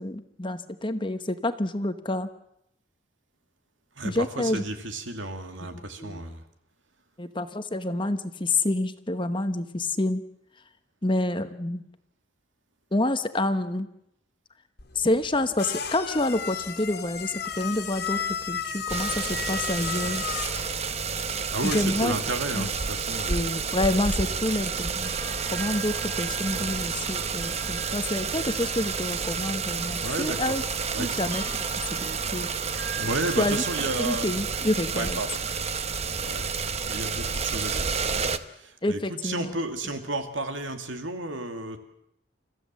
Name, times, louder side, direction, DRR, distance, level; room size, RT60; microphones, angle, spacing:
voice 1, 0.0-2.3 4.0-4.6 5.7-6.2 7.2-10.2 11.0-11.8 12.9-13.9 14.9-20.2 21.6-22.2 22.5-22.7 23.3-25.1 25.5-30.6 31.0-31.4 32.0-32.5 33.4-33.6 34.0-35.2 38.8-39.5, left 1 dB, 25° left, 9 dB, 1.0 m, -28 dB
voice 2, 4.0-6.4 21.5-23.4 24.2-24.4 26.5-26.7 30.0-31.1 33.0-34.4 34.9-35.4 36.2-36.5 36.8-41.8, right 2 dB, 70° right, 6 dB, 2.5 m, -33 dB
sound 1, 14.8-22.1, left 7 dB, 55° left, 2.1 m, -34 dB
sound 2, 18.9-38.4, right 5 dB, 30° right, 0.9 m, -30 dB
sound 3, 25.0-34.2, right 7 dB, 55° right, 6.0 m, -43 dB
30.0 x 15.0 x 7.6 m, 0.80 s
head